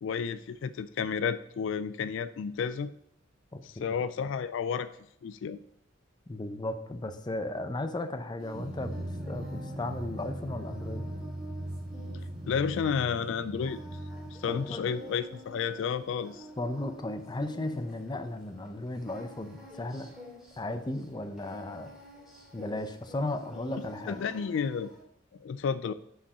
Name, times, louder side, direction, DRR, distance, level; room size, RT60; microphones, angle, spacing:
voice 1, 0.0-2.9 3.6-4.9 5.2-5.6 12.5-13.8 14.3-16.5 24.1-24.9 25.4-25.9, left 6 dB, 70° left, 13 dB, 0.3 m, -31 dB
voice 2, 3.5-3.8 6.3-11.0 14.5-14.9 16.6-20.1 20.6-21.9 22.5-24.3, left 2 dB, 20° left, 8 dB, 0.6 m, -35 dB
Singing, 8.4-25.0, equal, ahead, 2.1 m, -49 dB
Drum, 8.5-15.0, right 1 dB, 40° right, 0.7 m, -40 dB
5.7 x 5.2 x 6.1 m, 0.74 s
head